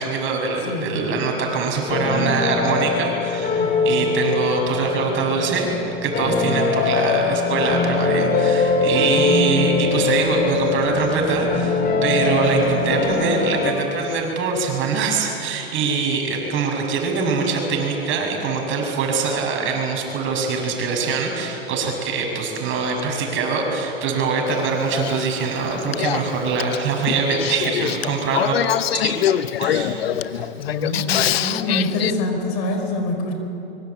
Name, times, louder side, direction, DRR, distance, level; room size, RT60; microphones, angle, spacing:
voice 1, 0.0-5.7 6.0-28.5 28.9-29.2 29.6-30.1 30.3-30.5 30.8-31.0, right 4 dB, 40° right, 2 dB, 7.0 m, -23 dB
voice 2, 0.7-1.1 3.5-4.1 9.0-9.3 30.6-33.3, left 2 dB, 50° left, 4 dB, 5.2 m, -26 dB
sound 1, 1.9-13.7, left 4 dB, 30° left, 3.5 m, -22 dB
Male speech man speaking / Female speech woman speaking / Conversation, 24.5-32.1, left 11 dB, 75° left, 1.0 m, -25 dB
24.0 x 23.5 x 8.7 m, 3.0 s
hypercardioid pair, 105°, 31 cm